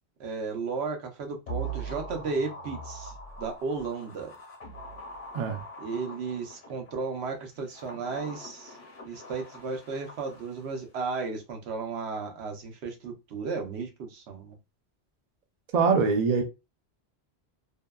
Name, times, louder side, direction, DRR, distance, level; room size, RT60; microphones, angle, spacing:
voice 1, 0.2-4.3 5.8-8.8 9.0-14.6, right 4 dB, 80° right, 0.9 m, -34 dB
sound 1, 1.5-6.9 7.6-10.8 11.1-11.2, right 2 dB, 55° left, 1.0 m, -42 dB
voice 2, 15.7-16.4, right 5 dB, 55° right, 0.5 m, -23 dB
2.6 x 2.1 x 2.3 m
omnidirectional pair, 1.1 m